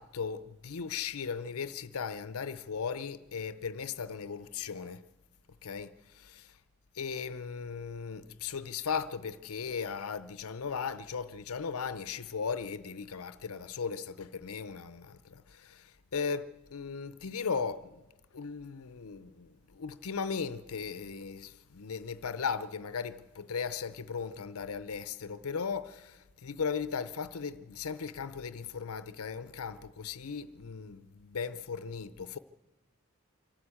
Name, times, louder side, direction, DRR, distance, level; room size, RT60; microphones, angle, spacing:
voice 1, 0.0-5.0 5.6-6.6 7.0-18.0 18.3-32.4, left 6 dB, 85° left, 0.6 m, -37 dB
24.5 x 12.5 x 8.6 m
head